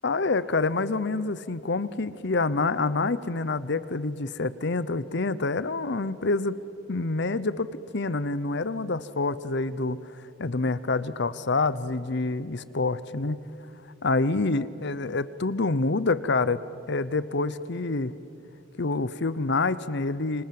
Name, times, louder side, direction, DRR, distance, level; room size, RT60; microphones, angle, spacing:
voice 1, 0.0-6.6 6.9-10.0 10.4-13.4 14.0-16.6 16.9-18.1 18.8-20.4, left 3 dB, 60° left, 16 dB, 0.8 m, -27 dB
29.0 x 25.0 x 7.7 m, 2.8 s
head